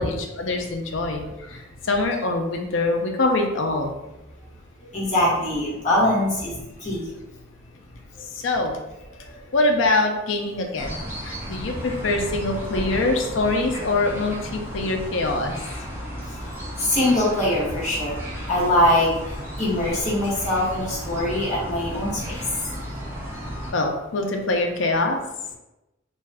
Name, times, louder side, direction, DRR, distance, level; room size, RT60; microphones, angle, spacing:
voice 1, 0.0-3.9 8.3-8.8 9.5-11.0 11.2-15.5 23.7-25.2, left 2 dB, 70° left, 3 dB, 0.5 m, -24 dB
voice 2, 4.9-6.5 6.8-7.0 16.8-18.2 18.5-19.1 19.6-22.4, left 1 dB, 40° left, -6 dB, 1.0 m, -22 dB
sound 1, 10.8-23.7, equal, 10° right, 0.6 m, -34 dB
2.6 x 2.3 x 3.3 m, 0.96 s
head